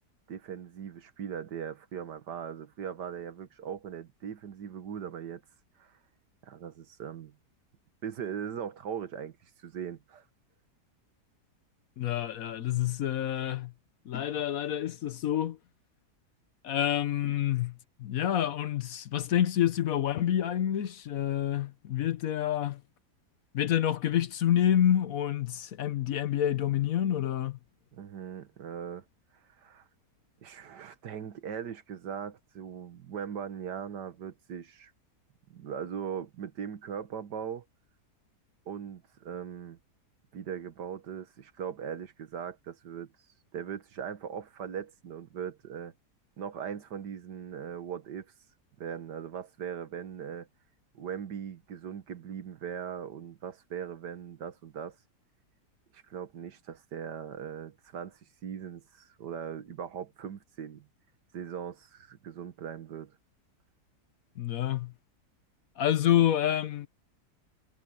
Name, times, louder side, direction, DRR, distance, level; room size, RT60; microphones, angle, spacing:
voice 1, 0.3-5.4 5.8-6.0 6.4-7.4 8.0-10.3 27.9-29.0 29.6-29.9 30.4-34.9 35.5-37.6 38.7-39.8 40.3-43.1 43.5-45.9 46.4-48.3 48.8-50.5 50.9-55.0 55.9-60.9 61.3-63.2, right 8 dB, 85° right, 1.9 m, -39 dB
voice 2, 12.0-13.7 14.1-15.6 16.6-17.7 18.0-22.8 23.5-27.6 64.4-64.9 65.8-66.9, left 11 dB, 60° left, 1.1 m, -28 dB
omnidirectional pair, 1.8 m